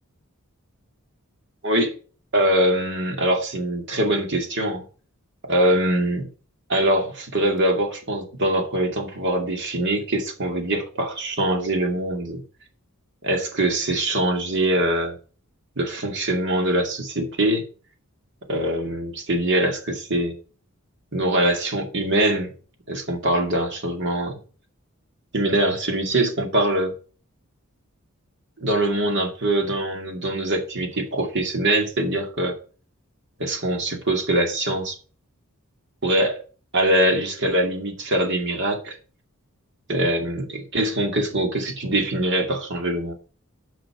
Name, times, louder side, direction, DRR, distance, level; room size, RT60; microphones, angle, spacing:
voice 1, 1.6-1.9 2.3-4.8 5.4-6.3 6.7-12.4 13.2-15.2 15.8-17.6 18.5-20.4 21.1-22.5 22.9-24.4 25.3-26.9 28.6-32.6 33.4-35.0 36.0-36.4 36.7-39.0 39.9-43.1, right 1 dB, 55° right, 2.3 m, -23 dB
9.1 x 5.8 x 6.0 m
head